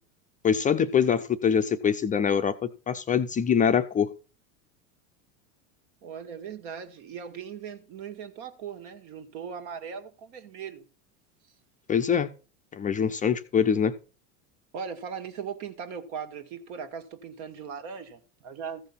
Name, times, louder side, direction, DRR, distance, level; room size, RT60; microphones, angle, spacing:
voice 1, 0.4-4.1 11.9-12.3 12.7-13.9, left 7 dB, 20° left, 0.5 m, -24 dB
voice 2, 6.0-10.8 14.7-18.8, right 7 dB, 60° right, 1.8 m, -39 dB
14.5 x 5.5 x 5.7 m
supercardioid pair, 120°, 41 cm